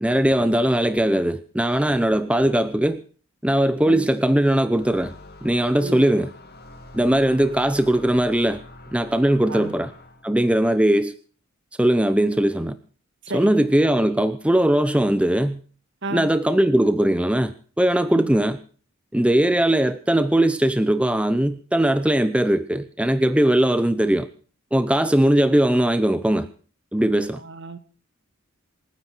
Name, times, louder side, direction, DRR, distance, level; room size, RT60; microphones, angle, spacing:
voice 1, 0.0-3.0 3.4-5.1 5.4-6.3 6.9-8.6 8.9-9.9 10.2-11.1 11.8-12.8 13.3-15.6 16.1-18.6 19.1-24.3 24.7-26.5 26.9-27.4, right 1 dB, 5° right, 11 dB, 0.7 m, -20 dB
sound 1, 4.7-10.4, left 1 dB, 50° left, 2.8 m, -45 dB
voice 2, 13.2-13.6 16.0-16.3 18.1-18.3 27.4-27.8, right 2 dB, 60° right, 11 dB, 1.7 m, -33 dB
27.5 x 9.5 x 4.5 m, 0.41 s
head